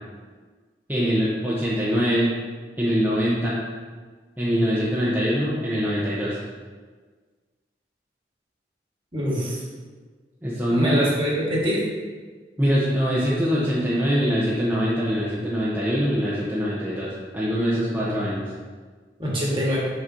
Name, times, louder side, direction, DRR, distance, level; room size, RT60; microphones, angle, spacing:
voice 1, 0.9-2.3 2.8-3.6 4.4-6.4 10.4-11.0 12.6-18.5, equal, 10° right, -9 dB, 0.8 m, -23 dB
voice 2, 9.1-9.6 10.7-11.8 19.2-19.8, equal, 30° right, -5 dB, 1.4 m, -24 dB
6.2 x 5.9 x 2.7 m, 1.5 s
head